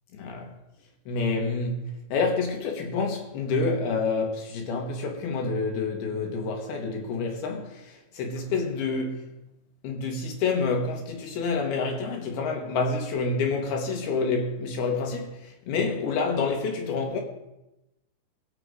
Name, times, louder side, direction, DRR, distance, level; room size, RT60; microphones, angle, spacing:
voice 1, 0.2-0.5 1.1-1.8 2.1-9.2 9.8-17.2, left 4 dB, 80° left, 3.2 m, -28 dB
23.0 x 8.1 x 2.5 m
omnidirectional pair, 4.5 m